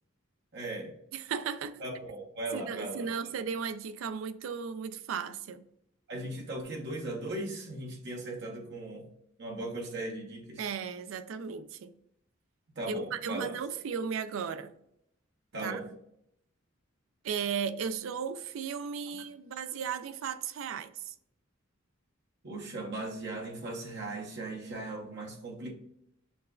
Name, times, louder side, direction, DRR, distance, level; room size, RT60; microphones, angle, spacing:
voice 1, 0.5-0.9 1.8-3.1 6.1-9.1 9.4-10.7 12.8-13.5 15.5-15.8 22.4-25.7, right 2 dB, 55° right, 0.8 m, -38 dB
voice 2, 1.1-1.8 2.5-5.6 10.6-11.9 12.9-14.7 15.6-15.8 17.2-21.1, right 6 dB, 75° right, 0.3 m, -35 dB
6.8 x 2.5 x 2.2 m
head